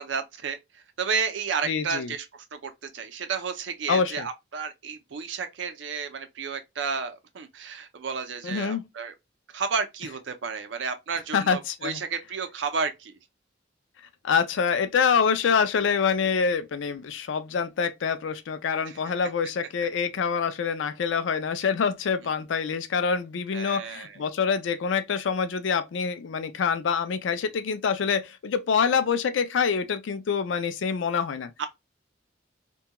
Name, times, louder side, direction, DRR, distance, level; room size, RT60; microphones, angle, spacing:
voice 1, 0.0-9.1 9.5-13.2 18.9-19.0 23.5-24.2 31.6-31.7, right 5 dB, 75° right, 0.5 m, -32 dB
voice 2, 1.7-2.1 3.9-4.3 8.4-8.8 11.3-12.0 14.2-31.5, left 6 dB, 85° left, 0.4 m, -26 dB
2.8 x 2.2 x 2.2 m
head